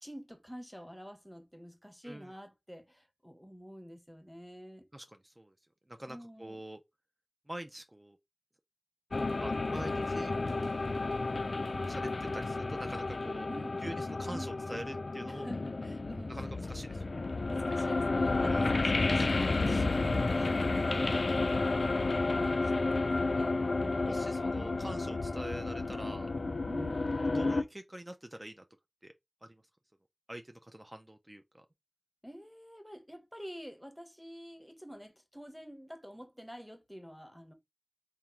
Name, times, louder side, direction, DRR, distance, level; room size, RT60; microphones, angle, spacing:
voice 1, 0.0-4.8 6.1-6.6 13.4-13.8 14.3-14.5 15.2-16.6 16.9-17.0 17.4-24.3 26.6-27.1 32.2-37.5, equal, ahead, 0.8 m, -48 dB
voice 2, 4.9-5.5 5.9-6.8 7.5-8.2 9.4-10.3 11.9-13.5 13.8-15.5 16.3-17.1 18.4-18.8 20.3-20.7 23.3-23.5 24.0-26.3 27.3-28.6 29.0-29.1 29.4-29.5 30.3-31.6, right 1 dB, 25° right, 0.4 m, -45 dB
sound 1, 9.1-27.6, left 3 dB, 80° left, 0.3 m, -31 dB
3.5 x 2.0 x 4.2 m
wide cardioid pair, 50°, 0 cm